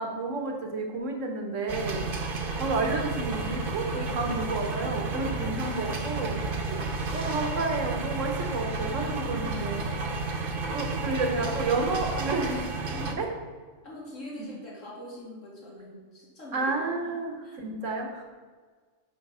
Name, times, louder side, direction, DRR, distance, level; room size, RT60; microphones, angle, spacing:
voice 1, 0.0-2.1 2.6-6.4 6.7-6.8 7.1-9.9 10.7-13.3 16.5-18.3, right 3 dB, 80° right, 3 dB, 1.5 m, -31 dB
sound 1, 1.7-13.2, right 3 dB, 50° right, 1.0 m, -32 dB
voice 2, 4.9-5.3 8.8-9.5 9.9-11.2 12.9-13.2 13.8-16.7 17.0-17.1 17.4-17.6, left 1 dB, 90° left, -5 dB, 2.7 m, -45 dB
7.0 x 5.2 x 5.6 m, 1.5 s
omnidirectional pair, 1.3 m